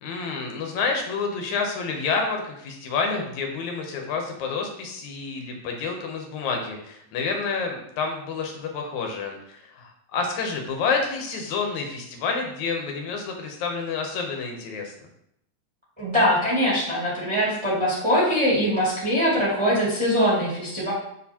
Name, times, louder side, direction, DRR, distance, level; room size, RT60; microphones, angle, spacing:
voice 1, 0.0-14.9, left 4 dB, 80° left, 2 dB, 2.2 m, -29 dB
voice 2, 16.0-20.9, equal, 10° right, -8 dB, 1.5 m, -22 dB
7.7 x 4.4 x 2.8 m, 0.76 s
omnidirectional pair, 3.4 m